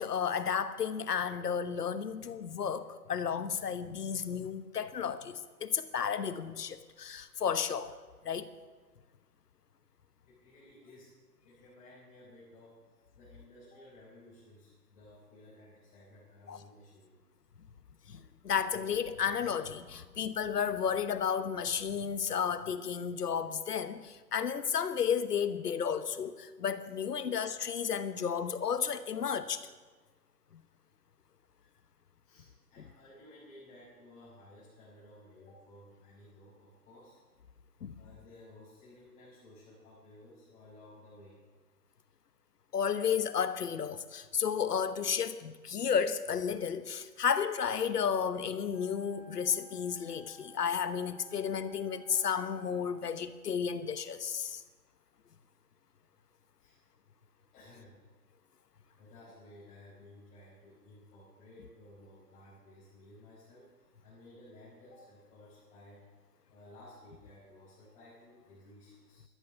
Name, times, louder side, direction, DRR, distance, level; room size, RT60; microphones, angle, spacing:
voice 1, 0.0-7.9 8.2-8.5 16.5-16.6 18.1-29.6 37.8-38.0 42.7-54.6, left 7 dB, 70° left, 12 dB, 1.1 m, -32 dB
voice 2, 10.3-11.1 11.4-17.2 27.2-27.3 32.2-37.2 38.0-41.4 56.6-56.8 57.5-58.0 59.0-66.0 66.5-69.3, left 1 dB, 15° left, -10 dB, 4.8 m, -56 dB
Wind instrument woodwind instrument, 48.7-53.1, right 4 dB, 40° left, 2.2 m, -57 dB
13.0 x 12.5 x 5.6 m, 1.4 s
hypercardioid pair, 150°, 49 cm